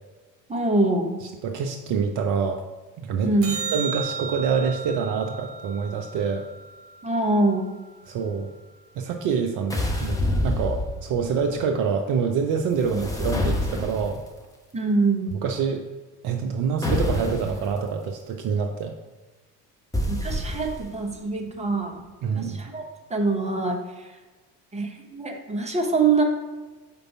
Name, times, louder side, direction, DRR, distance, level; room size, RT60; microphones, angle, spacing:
voice 1, 0.5-1.1 3.2-3.6 7.0-7.7 12.9-13.0 14.7-15.3 20.1-22.0 22.3-23.8 24.7-26.2, right 3 dB, 15° right, 1 dB, 1.1 m, -24 dB
voice 2, 1.2-2.6 3.0-3.3 3.7-6.5 8.1-8.5 9.0-14.2 15.3-15.8 16.2-18.9 22.2-22.6, right 6 dB, 40° right, 4 dB, 0.6 m, -26 dB
sound 1, 3.4-7.9 14.4-14.5, right 5 dB, 80° right, 0.7 m, -35 dB
sound 2, 9.7-11.3 12.7-14.3 16.8-17.7 19.9-21.0, left 1 dB, 5° left, 1.0 m, -27 dB
5.2 x 3.8 x 5.8 m, 1.2 s
figure-of-eight pair, 60°, 49 cm